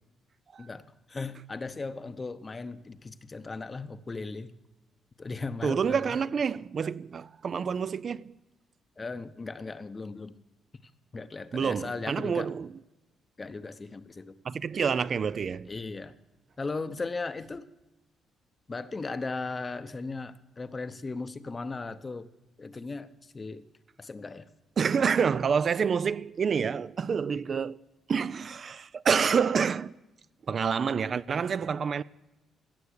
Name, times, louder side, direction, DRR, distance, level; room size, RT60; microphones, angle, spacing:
voice 1, 0.6-4.5 5.2-6.2 9.0-10.3 11.1-12.5 13.4-14.3 15.7-16.1 16.6-17.7 18.7-22.3 22.6-23.6 24.0-24.5, left 3 dB, 30° left, 0.7 m, -37 dB
voice 2, 5.6-8.3 11.5-12.7 14.4-15.7 24.8-27.8 28.1-29.9 30.5-32.0, right 6 dB, 45° right, 0.3 m, -28 dB
16.5 x 7.0 x 6.5 m
cardioid pair, 90°, 0 cm